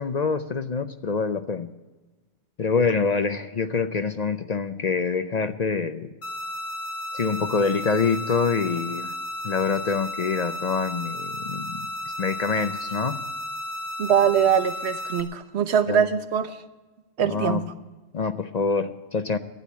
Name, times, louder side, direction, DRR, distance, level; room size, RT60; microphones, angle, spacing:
voice 1, 0.0-1.7 2.6-6.1 7.1-9.2 9.4-13.2 15.9-16.1 17.2-17.6 18.1-19.4, left 5 dB, 50° left, 10 dB, 0.6 m, -26 dB
sound 1, 6.2-15.2, left 1 dB, 70° left, 1.6 m, -33 dB
voice 2, 14.0-16.5 17.2-17.6, right 8 dB, 80° right, 11 dB, 1.1 m, -22 dB
12.0 x 10.0 x 8.3 m, 1.2 s
omnidirectional pair, 1.1 m